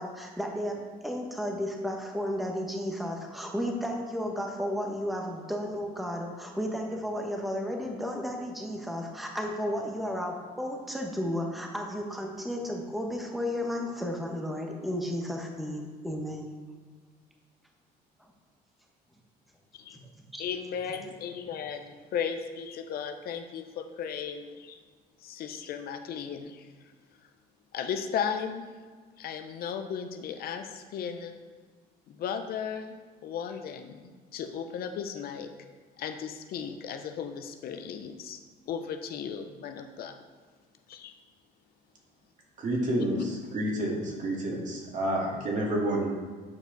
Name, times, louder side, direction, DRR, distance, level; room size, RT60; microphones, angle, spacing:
voice 1, 0.0-16.5 18.2-18.3 19.9-20.0 20.3-20.4, equal, ahead, 1 dB, 1.0 m, -33 dB
voice 2, 20.4-24.8 25.2-26.7 27.7-28.6 29.2-31.3 32.1-32.9 33.2-34.0 34.3-35.5 36.0-38.4 38.7-40.1 40.9-41.1 43.2-43.3, left 7 dB, 65° left, 7 dB, 0.7 m, -35 dB
voice 3, 42.6-43.2 43.5-46.1, right 1 dB, 45° right, -2 dB, 2.1 m, -29 dB
8.6 x 5.0 x 3.9 m, 1.5 s
cardioid pair, 110°, 17 cm